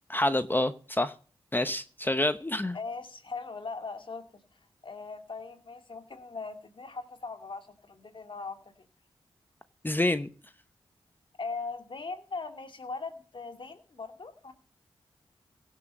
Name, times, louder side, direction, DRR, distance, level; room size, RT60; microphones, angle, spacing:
voice 1, 0.1-1.1 1.5-2.8 9.8-10.3, left 1 dB, 20° left, 11 dB, 0.9 m, -27 dB
voice 2, 2.7-4.2 4.8-8.7 11.4-14.5, left 4 dB, 55° left, 7 dB, 2.4 m, -39 dB
16.0 x 7.7 x 5.3 m, 0.42 s
cardioid pair, 45°, 10 cm